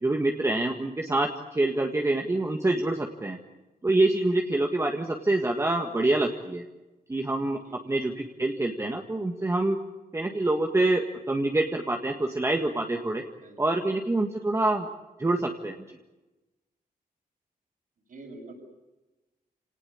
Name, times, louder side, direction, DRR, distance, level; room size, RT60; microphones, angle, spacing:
voice 1, 0.0-3.4 3.8-6.6 7.1-7.6 7.9-9.8 10.1-13.2 13.6-14.9 15.2-16.0, right 2 dB, 20° right, 2 dB, 1.7 m, -26 dB
voice 2, 7.6-8.0 13.4-13.8 18.1-18.5, right 2 dB, 60° right, 1 dB, 7.7 m, -47 dB
28.5 x 19.0 x 8.4 m, 1.1 s
wide cardioid pair, 145°, 16 cm